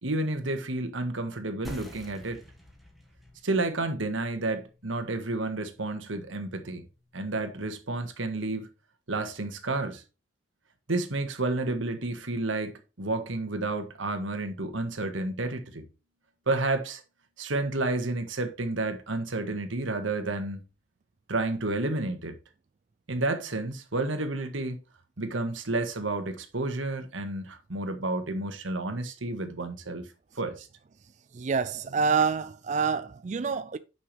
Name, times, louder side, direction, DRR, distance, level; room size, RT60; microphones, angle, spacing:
voice 1, 0.0-2.4 3.4-6.8 7.1-8.7 9.1-10.0 10.9-15.8 16.5-17.0 17.4-20.6 21.3-22.4 23.1-24.8 25.2-30.1 30.3-30.7, right 2 dB, 90° right, 1.6 m, -30 dB
sound 1, 1.6-6.8, equal, ahead, 1.7 m, -49 dB
voice 2, 31.3-33.8, right 5 dB, 40° right, 0.4 m, -27 dB
9.0 x 6.1 x 3.4 m
head